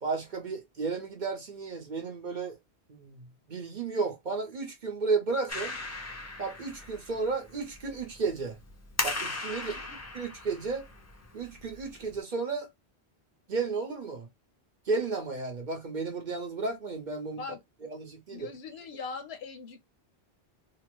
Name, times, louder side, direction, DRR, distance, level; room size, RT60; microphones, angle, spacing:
voice 1, 0.0-2.6 2.9-5.8 6.4-8.6 9.0-9.8 10.1-10.9 11.3-12.7 13.5-14.3 14.9-17.4 17.8-18.5, right 4 dB, 50° right, 0.9 m, -33 dB
Clapping, 5.5-12.2, left 3 dB, 25° left, 0.3 m, -38 dB
voice 2, 9.6-10.0 17.4-17.6 18.3-19.8, left 5 dB, 70° left, 0.9 m, -41 dB
2.9 x 2.1 x 2.9 m
omnidirectional pair, 1.1 m